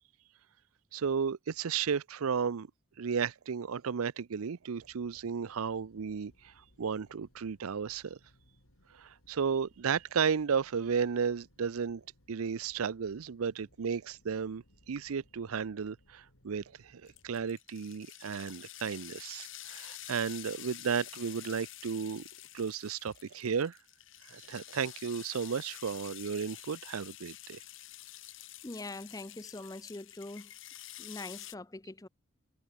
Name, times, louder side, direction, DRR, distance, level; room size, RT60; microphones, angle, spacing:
voice 1, 0.9-2.7 3.0-8.2 8.9-12.0 12.3-22.2 22.5-23.8 24.2-27.6, right 6 dB, 85° right, 0.5 m, -34 dB
sound 1, 4.7-17.5, left 1 dB, 85° left, 6.1 m, -66 dB
sound 2, 17.1-31.5, left 15 dB, 60° left, 1.5 m, -49 dB
voice 2, 28.6-30.5 31.0-32.1, left 2 dB, 15° left, 0.5 m, -43 dB
head